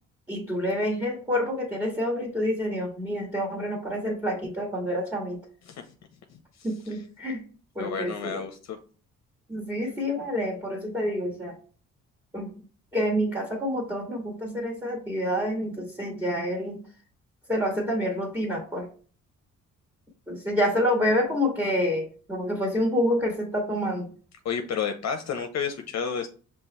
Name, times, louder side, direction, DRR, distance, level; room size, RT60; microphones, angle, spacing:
voice 1, 0.3-5.4 6.6-7.4 7.7-8.4 9.5-11.5 12.3-12.5 12.9-16.8 17.5-18.9 20.3-24.1, equal, 10° right, -1 dB, 1.7 m, -28 dB
voice 2, 7.8-8.8 24.4-26.3, left 6 dB, 60° left, 6 dB, 0.7 m, -31 dB
5.4 x 3.2 x 3.1 m, 0.39 s
cardioid pair, 90°, 30 cm